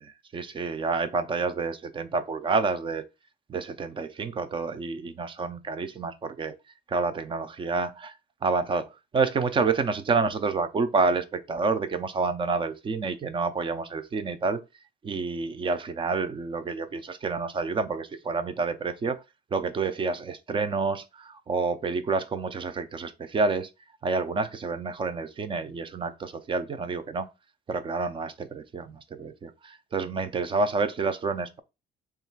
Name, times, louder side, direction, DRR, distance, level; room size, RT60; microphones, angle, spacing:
voice 1, 0.3-3.0 3.5-6.5 6.9-8.1 8.4-8.9 9.1-14.6 15.0-19.2 19.5-23.7 24.0-27.3 27.7-31.6, right 4 dB, 30° right, 0.5 m, -28 dB
3.1 x 2.4 x 4.4 m
cardioid pair, 110°, 17 cm